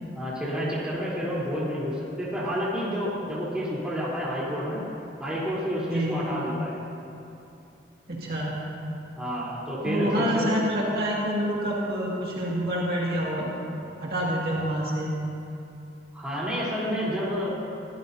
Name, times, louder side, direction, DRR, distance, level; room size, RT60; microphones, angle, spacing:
voice 1, 0.1-4.8 5.2-6.8 9.2-10.5 16.1-17.5, equal, 5° right, -8 dB, 3.7 m, -29 dB
voice 2, 5.9-6.2 8.1-8.6 9.8-13.5 14.0-15.1, equal, 55° right, -5 dB, 2.2 m, -27 dB
22.5 x 15.0 x 2.8 m, 2.7 s
head